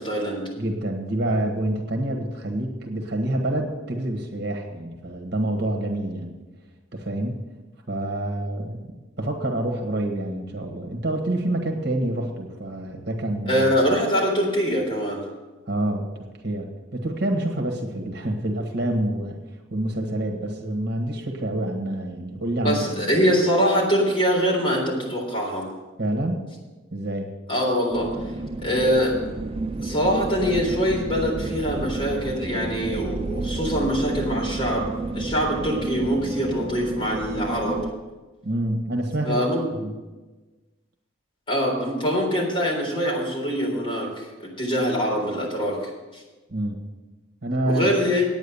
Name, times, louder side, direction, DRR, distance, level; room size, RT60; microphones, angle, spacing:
voice 1, 0.0-0.4 13.5-15.2 22.6-25.7 27.5-28.1 28.6-29.2 29.8-37.8 39.2-39.6 41.5-45.8 46.1-46.2 47.7-48.3, equal, 25° left, -3 dB, 3.7 m, -23 dB
voice 2, 0.6-6.3 6.9-7.4 7.9-13.7 15.7-16.1 16.4-19.4 19.7-23.2 26.0-26.4 26.9-27.3 38.4-39.4 39.8-39.9 46.5-46.8 47.4-47.9, right 1 dB, 55° right, 3 dB, 1.5 m, -27 dB
sound 1, 27.9-37.9, right 2 dB, 30° right, 0.4 m, -31 dB
9.5 x 9.1 x 7.0 m, 1.2 s
head